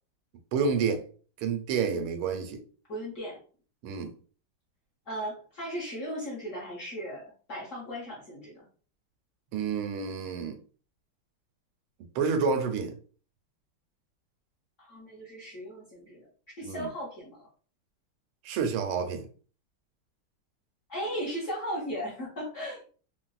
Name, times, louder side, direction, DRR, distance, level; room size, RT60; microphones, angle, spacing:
voice 1, 0.5-1.0 1.4-2.6 3.8-4.1 9.5-10.6 12.1-12.9 16.6-16.9 18.4-19.3, right 5 dB, 85° right, 1.4 m, -29 dB
voice 2, 2.9-3.4 5.1-8.6 14.8-16.2 16.6-17.5 20.9-22.9, equal, 50° left, 1.0 m, -37 dB
4.0 x 2.0 x 2.3 m
omnidirectional pair, 2.3 m